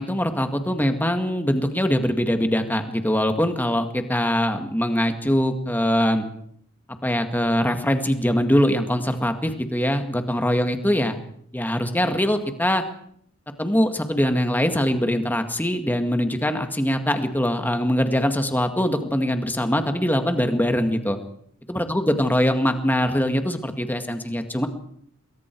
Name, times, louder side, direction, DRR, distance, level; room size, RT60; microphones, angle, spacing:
voice 1, 0.0-6.3 7.0-11.2 11.5-12.8 13.6-21.2 21.7-24.7, equal, 10° left, 6 dB, 2.0 m, -22 dB
28.0 x 21.5 x 4.7 m, 0.66 s
head